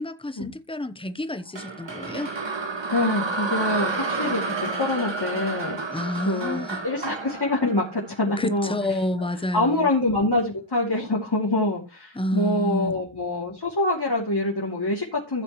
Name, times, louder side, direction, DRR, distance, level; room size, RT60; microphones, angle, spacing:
voice 1, 0.0-2.3 5.9-6.9 8.4-9.9 12.1-13.0, left 1 dB, 10° left, 1.0 m, -29 dB
sound 1, 1.6-8.7, right 4 dB, 65° right, 1.9 m, -30 dB
voice 2, 2.9-5.8 6.2-8.8 9.5-15.4, left 2 dB, 55° left, 3.1 m, -25 dB
15.0 x 7.2 x 3.1 m
wide cardioid pair, 55°, 47 cm